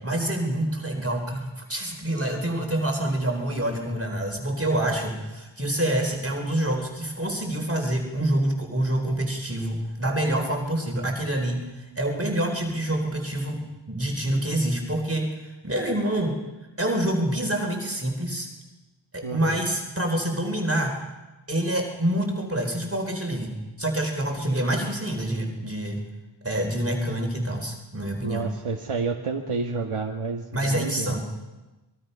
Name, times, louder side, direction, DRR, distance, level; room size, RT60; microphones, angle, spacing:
voice 1, 0.0-13.6 13.9-16.4 16.8-18.5 19.1-21.0 21.5-26.0 26.4-28.5 30.5-31.2, right 1 dB, 25° right, 2 dB, 4.2 m, -27 dB
voice 2, 19.2-19.6 28.2-31.2, right 4 dB, 85° right, 2 dB, 1.7 m, -30 dB
28.0 x 22.0 x 5.6 m, 1.1 s
wide cardioid pair, 70°, 50 cm